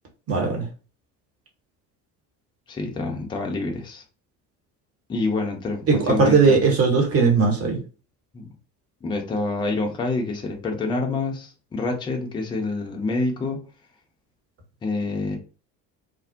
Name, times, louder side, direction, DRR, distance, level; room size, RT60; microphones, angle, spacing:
voice 1, 0.3-0.6 5.9-7.8, right 4 dB, 30° right, 2 dB, 1.0 m, -18 dB
voice 2, 2.7-4.0 5.1-6.6 8.3-8.5 9.0-13.6 14.8-15.4, left 3 dB, 10° left, 2 dB, 0.4 m, -27 dB
2.5 x 2.0 x 2.5 m, 0.36 s
figure-of-eight pair, 60°, 47 cm